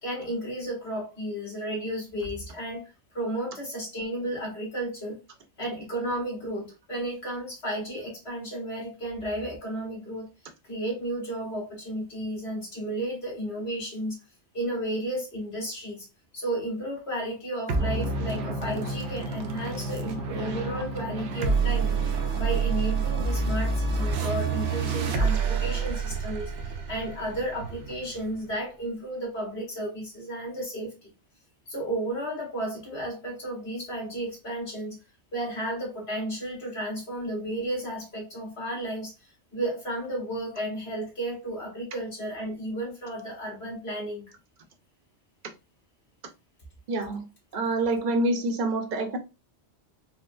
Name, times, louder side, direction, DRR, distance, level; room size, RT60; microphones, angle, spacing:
voice 1, 0.0-5.2 5.6-10.3 10.6-14.2 14.5-16.1 16.3-21.9 22.4-31.1 31.7-35.0 35.3-39.1 39.5-44.3, right 1 dB, 65° left, -3 dB, 1.7 m, -33 dB
sound 1, 17.7-28.5, right 4 dB, 85° right, 0.9 m, -28 dB
voice 2, 46.9-47.2 47.5-49.2, right 2 dB, 50° right, 5 dB, 0.7 m, -26 dB
4.2 x 2.0 x 2.4 m, 0.27 s
omnidirectional pair, 1.1 m